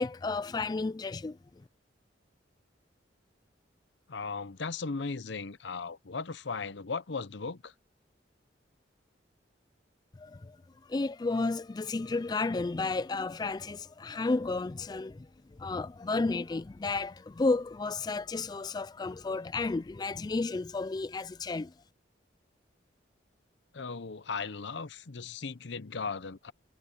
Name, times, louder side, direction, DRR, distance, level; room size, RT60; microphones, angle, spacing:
voice 1, 0.0-1.4 10.2-10.6 10.8-15.3 15.6-21.7, left 3 dB, 20° left, 0.3 m, -32 dB
voice 2, 4.1-7.7 23.7-26.5, left 4 dB, 70° left, 0.8 m, -37 dB
head